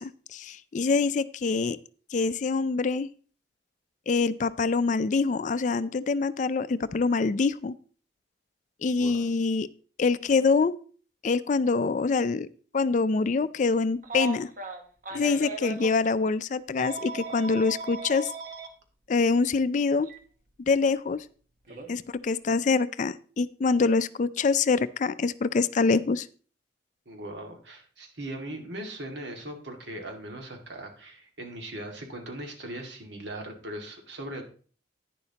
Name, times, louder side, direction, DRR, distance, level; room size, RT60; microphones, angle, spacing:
voice 1, 0.0-1.8 2.1-3.1 4.1-7.7 8.8-9.7 10.0-10.8 11.2-12.5 12.7-14.5 15.1-18.3 19.1-20.1 20.7-21.2 21.9-26.3, left 4 dB, 45° left, 16 dB, 0.4 m, -25 dB
voice 2, 9.0-9.3 15.1-15.4 21.7-22.0 27.1-34.4, right 1 dB, 90° right, 2 dB, 2.0 m, -39 dB
Telephone, 14.0-15.9 16.8-18.7 20.0-20.2 21.7-21.9, right 3 dB, 45° right, 1.1 m, -37 dB
10.5 x 9.8 x 2.9 m, 0.42 s
head